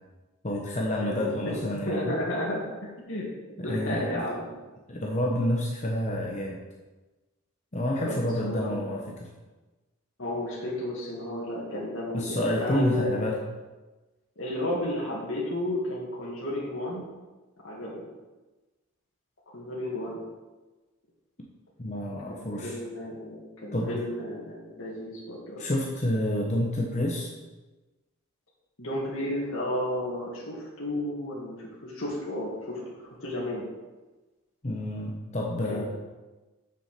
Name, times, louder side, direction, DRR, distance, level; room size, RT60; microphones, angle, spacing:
voice 1, 0.4-2.2 3.6-4.2 4.9-6.6 7.7-9.3 12.1-13.4 21.8-22.8 23.7-23.9 25.6-27.3 34.6-35.8, left 1 dB, 30° left, -1 dB, 0.9 m, -29 dB
voice 2, 1.0-3.3 3.6-4.5 8.0-8.9 10.2-13.3 14.4-17.0 17.6-17.9 19.5-20.2 22.3-25.7 28.8-33.7 35.7-35.9, left 1 dB, 65° left, -6 dB, 2.1 m, -33 dB
7.0 x 6.2 x 6.7 m, 1.2 s
head